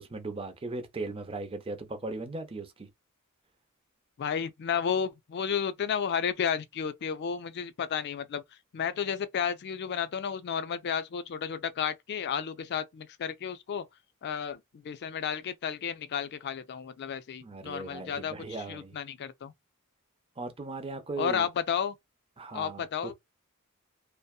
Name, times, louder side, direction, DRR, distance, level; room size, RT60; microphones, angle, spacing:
voice 1, 0.0-2.9 17.4-19.0 20.4-21.5 22.4-23.1, right 3 dB, 25° right, 0.5 m, -38 dB
voice 2, 4.2-8.4 8.7-13.8 14.2-18.4 18.7-19.5 21.2-22.0 22.5-23.1, left 7 dB, 50° left, 0.4 m, -32 dB
2.6 x 2.1 x 2.3 m
head